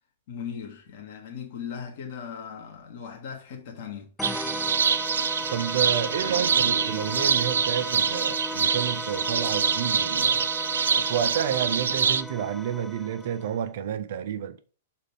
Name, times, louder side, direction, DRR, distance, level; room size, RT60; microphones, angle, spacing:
voice 1, 0.3-4.1, left 7 dB, 50° left, 1.9 m, -38 dB
sound 1, 4.2-13.6, left 1 dB, 5° left, 0.4 m, -36 dB
sound 2, 4.2-12.2, right 6 dB, 70° right, 0.5 m, -25 dB
voice 2, 5.5-10.5 10.9-14.6, right 9 dB, 55° right, 0.9 m, -30 dB
6.7 x 4.2 x 5.6 m
figure-of-eight pair, 105°, 0 cm